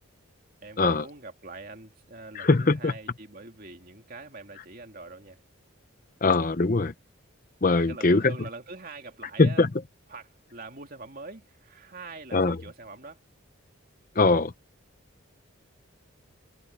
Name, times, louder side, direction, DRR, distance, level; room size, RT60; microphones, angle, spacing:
voice 1, 0.6-5.4 7.7-9.7 10.1-13.2, right 3 dB, 40° right, 2.7 m, -44 dB
voice 2, 2.3-2.9 6.2-6.9 7.6-8.3 9.4-9.7 12.3-12.6 14.2-14.5, left 3 dB, 40° left, 0.7 m, -21 dB
head